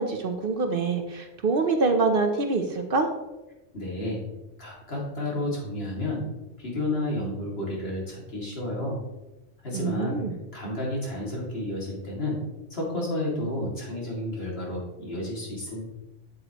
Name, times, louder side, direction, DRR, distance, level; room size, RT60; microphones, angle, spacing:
voice 1, 0.0-3.1 9.7-10.3, right 3 dB, 55° right, 5 dB, 0.9 m, -25 dB
voice 2, 3.7-4.2 4.6-6.2 6.6-9.0 9.6-10.2 10.5-12.4 12.7-15.8, left 1 dB, 55° left, -4 dB, 2.7 m, -31 dB
8.6 x 7.9 x 3.0 m, 1.0 s
omnidirectional pair, 1.2 m